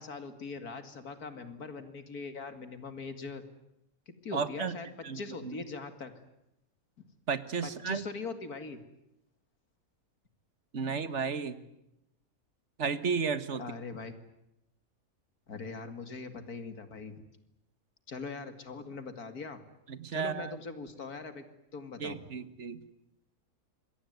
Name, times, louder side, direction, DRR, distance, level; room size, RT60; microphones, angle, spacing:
voice 1, 0.0-3.4 4.1-4.9 5.1-6.2 7.6-8.8 13.6-14.1 15.5-17.2 18.1-19.6 20.1-21.4 21.7-22.3, left 4 dB, 90° left, 9 dB, 2.7 m, -41 dB
voice 2, 4.3-4.8 5.0-5.6 7.3-8.0 10.7-11.6 12.8-13.6 19.9-20.6 22.0-22.8, right 5 dB, 50° right, 13 dB, 1.8 m, -33 dB
26.5 x 23.5 x 9.5 m, 0.84 s
omnidirectional pair, 1.5 m